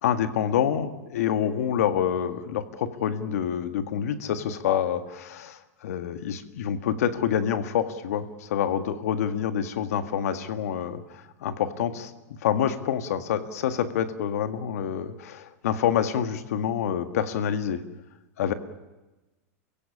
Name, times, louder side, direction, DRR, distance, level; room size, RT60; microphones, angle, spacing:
voice 1, 0.0-11.0 11.4-12.1 12.4-17.8 18.4-18.5, left 9 dB, 75° left, 9 dB, 1.9 m, -27 dB
28.5 x 16.5 x 8.6 m, 1.1 s
supercardioid pair, 175°, 8 cm